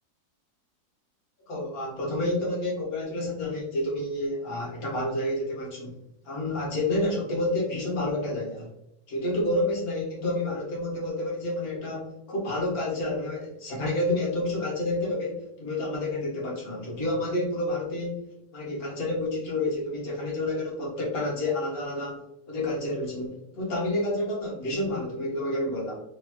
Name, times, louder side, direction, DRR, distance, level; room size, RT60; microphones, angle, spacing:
voice 1, 1.5-6.0 6.3-8.7 9.1-26.0, left 1 dB, 55° left, -4 dB, 1.8 m, -29 dB
4.0 x 3.7 x 2.9 m, 0.83 s
omnidirectional pair, 1.9 m